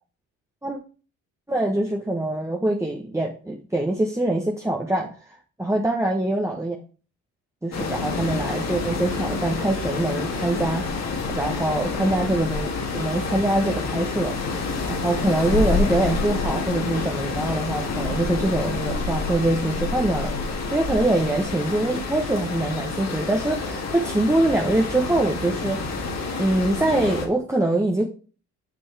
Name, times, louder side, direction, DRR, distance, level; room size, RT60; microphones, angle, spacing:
voice 1, 1.5-5.1 5.6-6.8 7.6-28.0, right 1 dB, 10° right, 0 dB, 1.1 m, -24 dB
sound 1, 7.7-27.3, left 3 dB, 60° left, 2.2 m, -28 dB
8.6 x 5.3 x 3.4 m, 0.37 s
cardioid pair, 90°, 30 cm